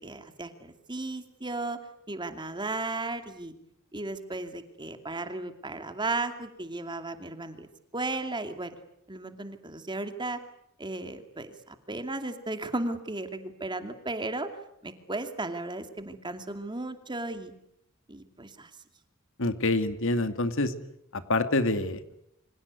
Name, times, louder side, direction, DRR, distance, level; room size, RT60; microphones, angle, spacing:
voice 1, 0.0-1.8 2.1-3.5 3.9-7.7 7.9-8.8 9.1-10.4 10.8-14.5 14.8-17.5 18.1-18.7, right 2 dB, 20° right, 8 dB, 2.5 m, -35 dB
voice 2, 19.4-20.7 21.1-22.2, left 2 dB, 65° left, 10 dB, 2.3 m, -27 dB
28.0 x 25.5 x 8.3 m, 0.77 s
head